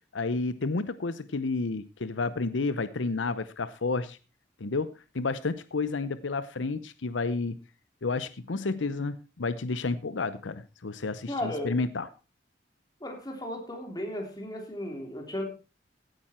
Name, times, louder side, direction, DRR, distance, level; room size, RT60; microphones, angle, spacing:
voice 1, 0.1-4.2 4.6-7.6 8.0-12.1, left 3 dB, 80° left, 14 dB, 0.7 m, -31 dB
voice 2, 11.3-11.8 13.0-15.5, left 1 dB, 20° left, 2 dB, 3.4 m, -35 dB
16.5 x 9.1 x 4.3 m, 0.31 s
head